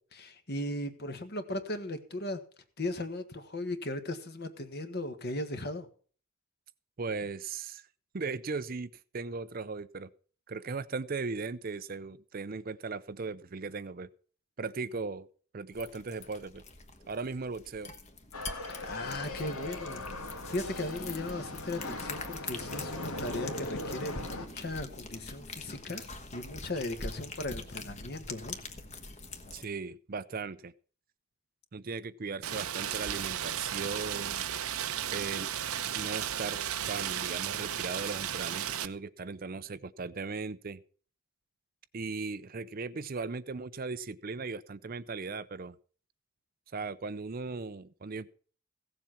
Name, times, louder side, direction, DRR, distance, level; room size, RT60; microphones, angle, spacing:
voice 1, 0.1-2.4 2.8-5.9 18.7-20.0 20.5-28.6, left 1 dB, 50° left, 8 dB, 1.5 m, -37 dB
voice 2, 7.0-7.9 8.1-10.1 10.5-14.1 14.6-15.3 15.5-16.6 17.1-17.9 29.5-30.7 31.7-34.4 35.1-35.5 35.9-36.6 36.9-40.8 41.9-45.8 46.7-48.3, right 4 dB, 40° right, 14 dB, 0.5 m, -38 dB
sound 1, 15.7-29.6, left 3 dB, 30° left, 1.3 m, -44 dB
sound 2, 18.3-24.5, left 2 dB, 85° left, 2.4 m, -40 dB
Rain, 32.4-38.9, right 10 dB, 85° right, 0.8 m, -34 dB
16.0 x 7.5 x 5.8 m, 0.43 s
head